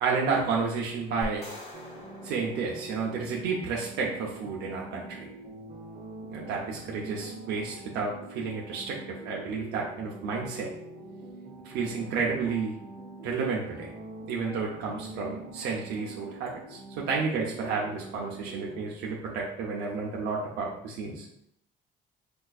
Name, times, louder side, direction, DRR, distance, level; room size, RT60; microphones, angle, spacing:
voice 1, 0.0-1.5 2.2-5.3 6.3-10.7 11.6-12.7 13.2-13.9 14.3-21.3, right 5 dB, 85° right, -3 dB, 0.6 m, -31 dB
sound 1, 1.2-3.6, left 1 dB, 40° left, 0.9 m, -44 dB
sound 2, 1.7-18.9, right 2 dB, 35° right, 0.7 m, -44 dB
4.5 x 2.3 x 2.4 m, 0.72 s
cardioid pair, 110°, 17 cm